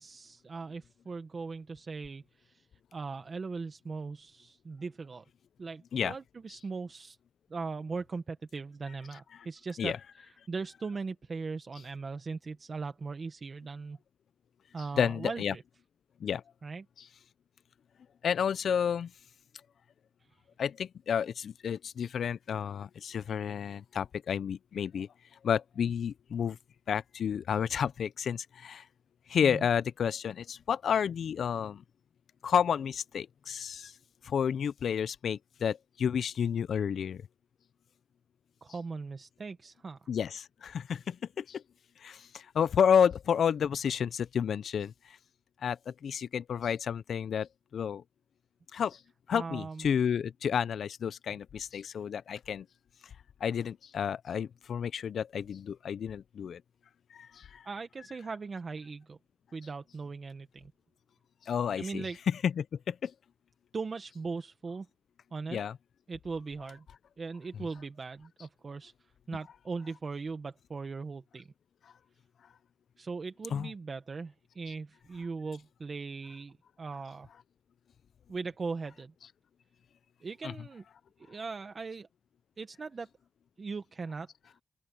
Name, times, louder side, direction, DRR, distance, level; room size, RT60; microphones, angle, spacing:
voice 1, 0.0-2.7 2.9-5.2 5.6-7.2 7.5-14.0 14.7-15.6 16.6-16.8 29.4-29.7 38.6-40.1 49.3-49.9 57.6-59.2 59.5-60.7 61.8-62.2 63.7-64.9 65.3-65.6 66.1-66.8 67.2-68.9 69.3-71.5 73.0-77.3 78.3-79.1 80.2-80.8 81.2-82.1 82.6-83.1 83.6-84.3, right 4 dB, 45° right, 1.1 m, -39 dB
voice 2, 15.0-15.5 16.2-16.4 18.2-19.1 20.6-25.1 25.4-26.6 26.9-28.8 29.3-31.8 32.4-33.9 34.2-37.2 40.1-41.6 42.0-44.9 45.6-48.0 48.7-49.0 49.3-52.7 53.4-56.6 57.1-57.7 61.5-62.1 62.4-63.1 65.5-65.8 73.5-73.7 80.4-80.5, left 8 dB, 80° left, 0.4 m, -31 dB
open air
wide cardioid pair, 105°, 0 cm